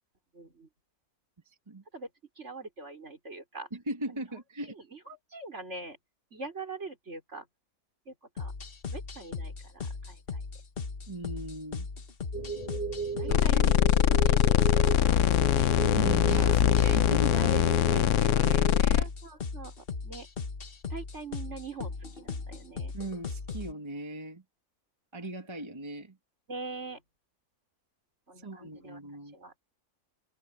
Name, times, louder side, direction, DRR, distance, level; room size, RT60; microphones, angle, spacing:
voice 1, 0.3-0.7 1.9-2.1 2.4-3.7 4.1-4.2 4.9-6.0 6.3-7.4 8.1-8.5 8.9-10.4 13.2-13.8 14.2-15.3 15.6-15.8 16.3-16.5 17.3-17.6 19.0-19.7 20.0-20.3 20.9-22.9 26.5-27.0 28.3-29.0 29.3-29.6, right 3 dB, 50° right, 5.1 m, -43 dB
voice 2, 1.5-1.8 3.7-4.7 11.1-11.9 13.3-13.8 15.9-19.1 22.9-24.4 25.1-26.2 28.4-29.4, right 1 dB, 20° right, 1.9 m, -38 dB
sound 1, 8.4-23.7, left 4 dB, 40° left, 1.4 m, -38 dB
sound 2, 12.3-18.8, right 3 dB, 25° left, 1.5 m, -36 dB
sound 3, 13.3-19.0, left 11 dB, 65° left, 0.9 m, -23 dB
omnidirectional pair, 1.5 m